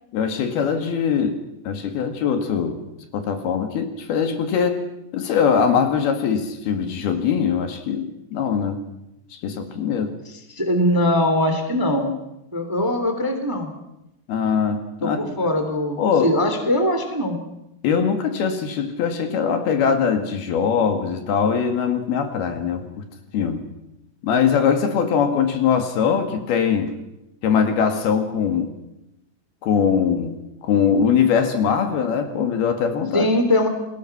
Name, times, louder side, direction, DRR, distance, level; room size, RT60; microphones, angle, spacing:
voice 1, 0.1-1.4 1.7-2.8 3.1-4.8 5.1-8.8 9.3-10.1 14.3-15.3 16.0-16.3 17.8-22.9 23.3-23.6 24.2-26.9 27.4-28.7 29.6-30.3 30.6-33.3, left 7 dB, 70° left, 7 dB, 3.8 m, -21 dB
voice 2, 10.2-12.1 12.5-13.7 15.0-17.4 33.1-33.7, left 1 dB, 5° right, 6 dB, 2.1 m, -21 dB
29.0 x 20.5 x 6.0 m, 0.88 s
omnidirectional pair, 4.7 m